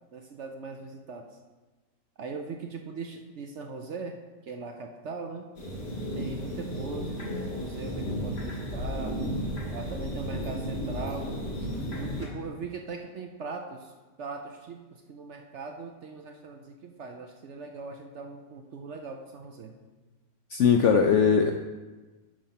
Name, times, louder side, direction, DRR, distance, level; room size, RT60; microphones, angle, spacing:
voice 1, 0.1-1.2 2.2-4.2 4.4-5.5 6.2-9.2 9.7-11.3 11.9-13.9 14.2-19.8, right 4 dB, 60° right, 4 dB, 0.8 m, -40 dB
sound 1, 5.6-12.3, equal, 40° left, 1.9 m, -33 dB
voice 2, 20.5-21.5, left 6 dB, 70° left, 5 dB, 0.7 m, -20 dB
10.0 x 4.2 x 5.7 m, 1.2 s
omnidirectional pair, 1.7 m